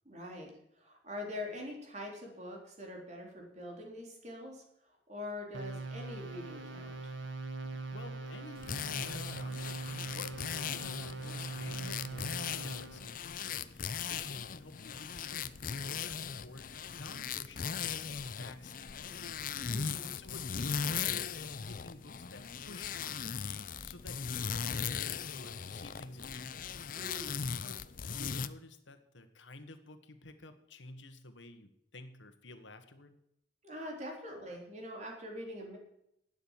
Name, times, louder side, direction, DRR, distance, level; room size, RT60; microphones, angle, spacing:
voice 1, 0.1-0.5 0.8-6.9 19.7-20.2 26.9-27.4 33.6-35.8, left 1 dB, 40° right, 0 dB, 3.8 m, -44 dB
sound 1, 5.5-13.1, right 3 dB, 80° right, 1.7 m, -42 dB
voice 2, 7.9-26.9 27.6-33.2, left 2 dB, 85° left, 8 dB, 1.5 m, -52 dB
sound 2, 8.6-28.5, left 7 dB, 45° left, 0.6 m, -38 dB
12.5 x 9.2 x 7.4 m, 0.76 s
head